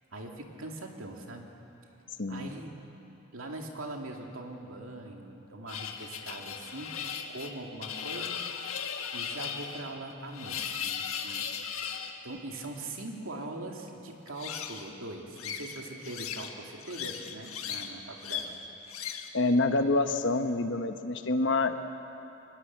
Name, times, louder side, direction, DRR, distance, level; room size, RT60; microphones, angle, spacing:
voice 1, 0.1-1.6 2.3-2.7 3.3-6.9 7.3-8.4 9.1-11.4 12.2-18.6, right 2 dB, 75° right, 1 dB, 2.5 m, -41 dB
voice 2, 2.2-2.5 19.3-21.7, left 2 dB, 55° left, 7 dB, 1.1 m, -27 dB
sound 1, 5.7-12.1 14.3-14.9 15.4-16.5 16.8-17.9 18.2-18.5 18.9-19.3, left 7 dB, 85° left, 1.5 m, -37 dB
23.5 x 20.0 x 7.3 m, 2.9 s
head